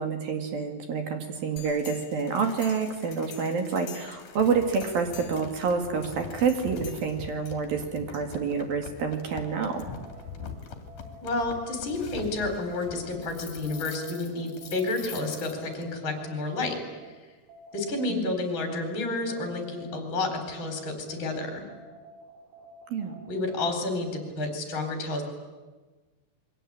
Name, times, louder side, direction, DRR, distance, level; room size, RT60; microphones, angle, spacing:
voice 1, 0.0-9.9 18.1-18.3 22.9-23.2, right 5 dB, 55° right, 5 dB, 3.3 m, -28 dB
sound 1, 1.6-15.8, left 6 dB, 45° left, 3.5 m, -43 dB
sound 2, 9.3-18.2 18.6-24.6, right 1 dB, 80° right, 6.9 m, -51 dB
voice 2, 11.2-16.8 17.7-21.7 23.3-25.2, left 2 dB, 25° left, 5 dB, 4.4 m, -30 dB
28.5 x 23.0 x 8.9 m, 1.3 s
omnidirectional pair, 5.8 m